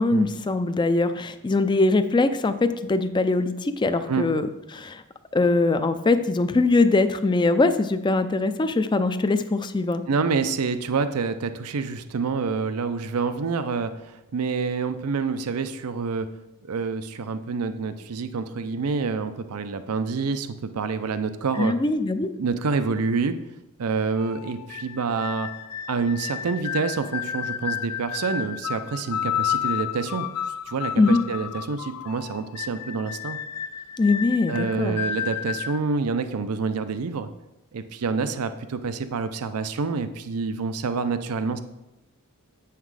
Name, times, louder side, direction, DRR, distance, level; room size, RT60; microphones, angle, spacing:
voice 1, 0.0-4.5 4.7-5.0 5.3-10.0 21.6-22.3 31.0-31.2 34.0-35.0, left 3 dB, 20° left, 10 dB, 0.4 m, -22 dB
voice 2, 10.1-16.3 16.6-21.7 22.4-23.4 23.8-25.5 25.9-30.3 30.7-33.4 34.5-37.3 37.7-41.6, right 4 dB, 80° right, 10 dB, 0.5 m, -27 dB
sound 1, 24.2-35.8, left 9 dB, 85° left, 0.4 m, -32 dB
8.1 x 5.8 x 4.8 m, 0.95 s
head